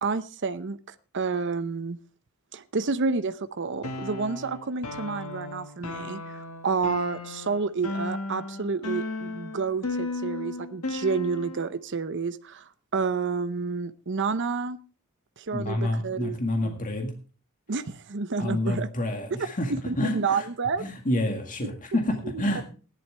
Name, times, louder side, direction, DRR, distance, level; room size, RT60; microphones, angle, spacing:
voice 1, 0.0-2.0 2.5-14.8 15.4-16.4 16.6-16.7 17.7-18.9 19.9-20.8 22.3-22.6, right 4 dB, 55° right, 11 dB, 0.7 m, -29 dB
sound 1, 3.8-11.7, left 2 dB, 75° left, 1.8 m, -35 dB
voice 2, 15.5-17.1 18.4-20.5 20.8-22.6, left 1 dB, 40° left, 3 dB, 1.9 m, -28 dB
16.5 x 11.0 x 3.4 m, 0.35 s
head